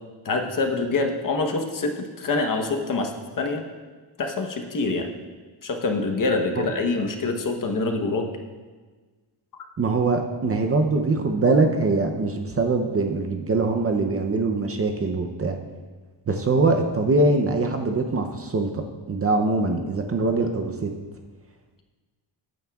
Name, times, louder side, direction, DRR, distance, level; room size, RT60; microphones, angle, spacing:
voice 1, 0.2-3.1 3.4-3.6 4.2-5.1 5.6-8.3, left 3 dB, 45° left, 3 dB, 1.0 m, -25 dB
voice 2, 9.8-15.6 16.3-20.9, right 3 dB, 30° right, 5 dB, 0.6 m, -23 dB
14.5 x 9.2 x 2.3 m, 1.4 s
wide cardioid pair, 160°, 45 cm